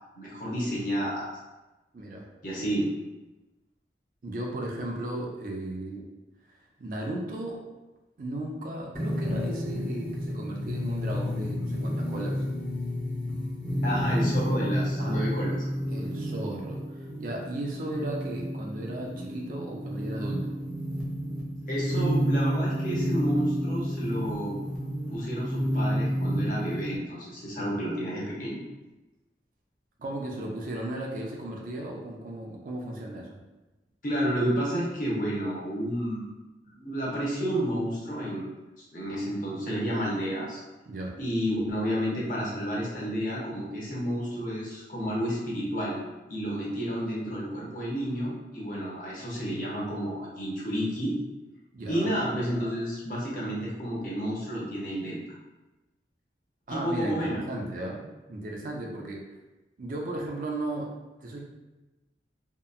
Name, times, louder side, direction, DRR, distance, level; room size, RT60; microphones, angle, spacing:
voice 1, 0.2-1.3 2.4-2.9 13.8-15.5 21.7-24.5 25.1-28.6 34.0-36.3 36.7-38.5 38.8-40.6 41.2-46.0 46.3-51.1 51.9-55.2 56.7-57.4, equal, 45° left, -5 dB, 0.7 m, -30 dB
voice 2, 1.9-2.3 4.2-6.0 6.5-7.6 8.2-12.4 15.0-15.2 15.9-20.5 30.0-33.4 40.9-41.1 51.7-52.1 56.7-59.2 59.8-60.9 61.2-61.4, right 1 dB, 50° right, -1 dB, 0.4 m, -35 dB
sound 1, 8.9-27.0, equal, ahead, 0.5 m, -30 dB
2.8 x 2.2 x 2.3 m, 1.1 s
head